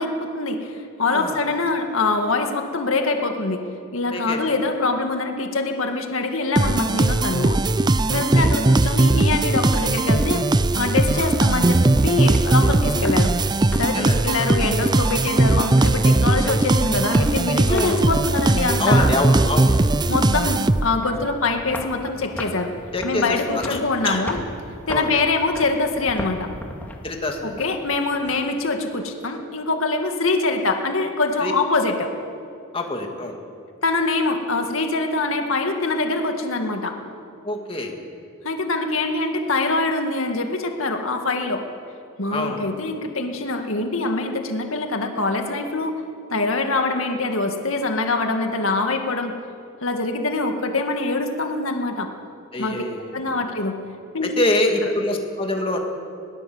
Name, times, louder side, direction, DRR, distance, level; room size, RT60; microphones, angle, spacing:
voice 1, 0.0-3.6 3.9-7.6 8.1-10.5 10.7-13.4 13.8-19.1 20.1-22.7 23.0-24.4 24.9-26.5 27.4-32.1 33.8-37.0 38.4-41.7 42.2-45.9 46.3-49.3 49.8-52.1 52.6-52.8 53.1-53.8 54.1-54.3, left 3 dB, 85° left, 4 dB, 1.9 m, -24 dB
voice 2, 4.1-4.5 8.1-8.5 11.1-11.3 13.9-14.5 17.7-18.0 18.8-19.8 22.9-23.8 24.0-24.2 24.9-25.1 27.0-27.4 31.4-31.5 32.7-33.4 37.4-38.0 42.3-42.7 52.5-53.4 54.2-55.8, left 2 dB, 25° left, 2 dB, 2.2 m, -25 dB
sound 1, 6.5-21.1, right 2 dB, 20° right, 0.5 m, -19 dB
sound 2, 11.7-28.3, left 1 dB, 10° left, 2.1 m, -38 dB
21.5 x 17.5 x 7.9 m, 2.5 s
head